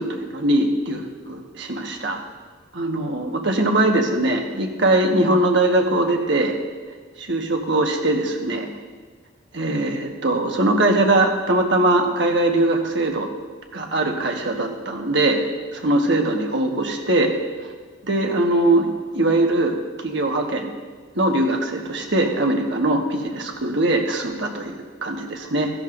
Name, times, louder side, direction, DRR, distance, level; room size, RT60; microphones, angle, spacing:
voice 1, 0.0-2.2 2.7-6.6 7.2-8.7 9.5-13.3 13.7-15.4 15.7-17.3 18.0-19.8 20.0-20.7 21.1-25.7, right 2 dB, 60° right, 2 dB, 1.4 m, -21 dB
16.0 x 12.5 x 2.6 m, 1.5 s
head